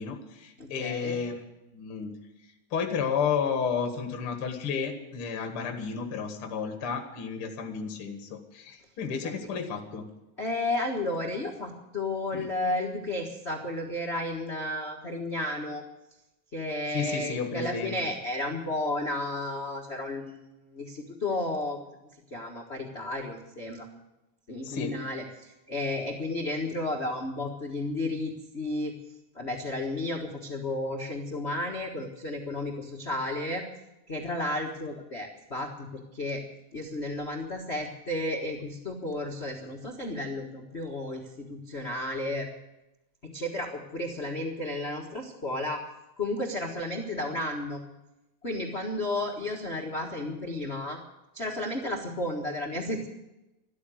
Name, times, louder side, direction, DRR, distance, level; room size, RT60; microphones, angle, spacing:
voice 1, 0.0-1.4 1.7-2.1 2.7-10.1 12.3-12.5 16.9-17.9 24.6-25.0, left 6 dB, 45° left, 5 dB, 2.1 m, -32 dB
voice 2, 0.6-1.2 9.2-9.3 10.4-15.8 16.5-21.8 22.3-24.0 24.5-28.9 29.3-33.6 34.1-36.4 36.7-42.5 43.2-45.8 46.2-47.8 48.4-51.0 51.3-53.1, left 1 dB, 65° left, 1 dB, 0.6 m, -33 dB
13.0 x 13.0 x 7.7 m, 0.94 s
omnidirectional pair, 4.0 m